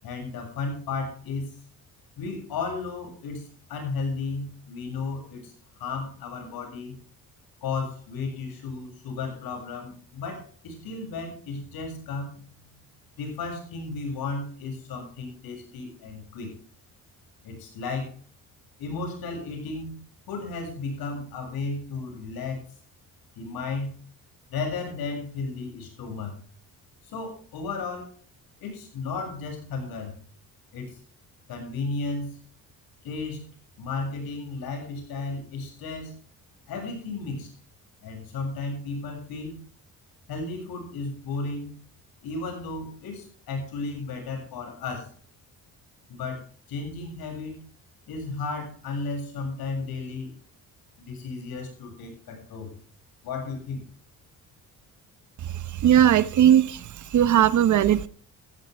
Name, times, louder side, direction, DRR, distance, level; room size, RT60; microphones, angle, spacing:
voice 1, 0.0-1.6 2.2-7.0 7.6-12.4 13.2-16.6 17.4-18.2 18.8-20.0 20.3-22.7 23.4-24.0 24.5-26.4 27.0-28.1 28.6-30.2 30.7-31.0 31.5-32.4 33.0-33.4 33.8-36.2 36.7-37.5 38.0-39.6 40.3-41.7 42.2-45.1 46.1-47.6 48.1-50.3 51.0-52.7 53.2-53.9, left 3 dB, 75° left, 7.2 m, -34 dB
voice 2, 55.8-56.8 57.1-58.1, right 10 dB, 55° right, 1.0 m, -18 dB
17.5 x 14.5 x 3.5 m
cardioid pair, 120°, 36 cm